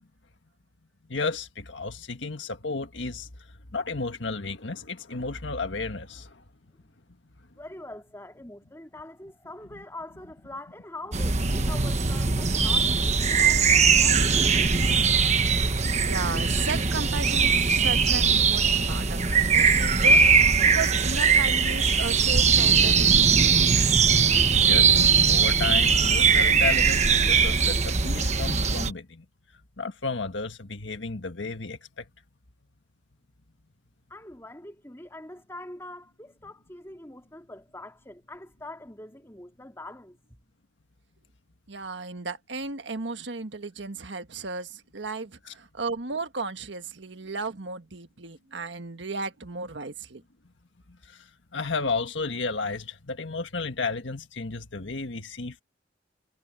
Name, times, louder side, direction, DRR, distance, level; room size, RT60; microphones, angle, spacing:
voice 1, 1.1-3.3 3.7-6.4 24.6-29.2 29.8-32.1 45.4-45.5 50.9-55.6, left 4 dB, 80° left, 1.6 m, -33 dB
voice 2, 7.6-14.6 34.1-40.2, left 2 dB, 15° left, 2.6 m, -43 dB
sound 1, 11.1-28.9, right 5 dB, 35° right, 1.2 m, -21 dB
voice 3, 16.0-23.6 41.7-50.2, right 3 dB, 75° right, 1.6 m, -35 dB
head